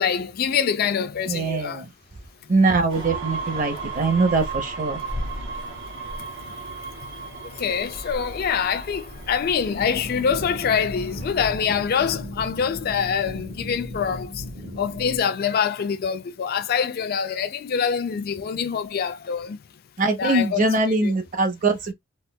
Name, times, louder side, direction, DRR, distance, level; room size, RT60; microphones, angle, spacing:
voice 1, 0.0-1.8 7.6-14.4 14.8-19.6 20.2-20.7 21.0-21.1, left 7 dB, 45° left, 0.3 m, -25 dB
voice 2, 1.3-1.9 2.5-5.0 20.0-21.9, right 3 dB, 40° right, 0.7 m, -22 dB
sound 1, 2.9-11.5, right 3 dB, 65° right, 1.5 m, -35 dB
sound 2, 9.7-15.2, left 1 dB, 85° right, 1.6 m, -36 dB
4.2 x 2.2 x 2.2 m
head